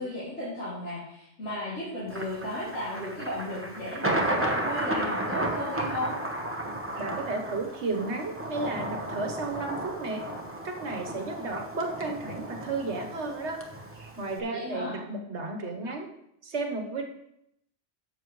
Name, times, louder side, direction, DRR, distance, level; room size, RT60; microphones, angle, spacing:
voice 1, 0.0-6.2 14.5-14.9, left 1 dB, 90° left, -9 dB, 2.8 m, -34 dB
Thunder, 2.1-14.4, right 1 dB, 10° right, 1.0 m, -33 dB
voice 2, 7.0-10.2 10.6-16.1 16.4-17.0, right 3 dB, 75° right, 3 dB, 1.5 m, -33 dB
12.0 x 7.4 x 3.2 m, 0.79 s
omnidirectional pair, 1.2 m